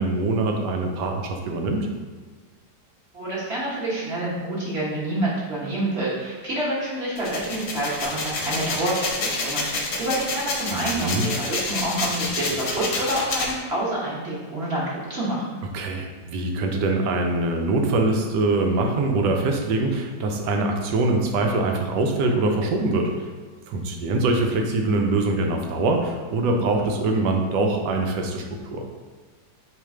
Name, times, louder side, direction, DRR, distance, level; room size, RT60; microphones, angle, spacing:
voice 1, 0.0-1.9 10.7-11.3 15.7-23.1 23.7-28.4 28.7-28.8, right 2 dB, 75° right, 3 dB, 1.2 m, -23 dB
voice 2, 3.1-15.6, right 1 dB, 40° right, -7 dB, 1.1 m, -27 dB
sound 1, 7.2-13.5, left 3 dB, 65° left, 1.2 m, -28 dB
3.2 x 3.1 x 4.8 m, 1.4 s
omnidirectional pair, 2.0 m